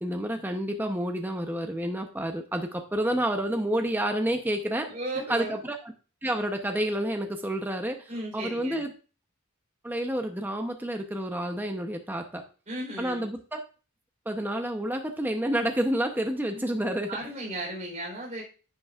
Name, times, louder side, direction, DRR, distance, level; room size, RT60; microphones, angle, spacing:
voice 1, 0.0-4.9 5.3-5.9 6.2-8.9 9.8-12.4 13.0-13.6 14.3-17.2, right 1 dB, 10° right, 4 dB, 0.7 m, -29 dB
voice 2, 4.8-5.6 8.1-8.9 12.7-13.3 16.5-16.7 17.1-18.4, right 1 dB, 35° right, -2 dB, 3.7 m, -35 dB
10.0 x 8.3 x 2.4 m, 0.36 s
head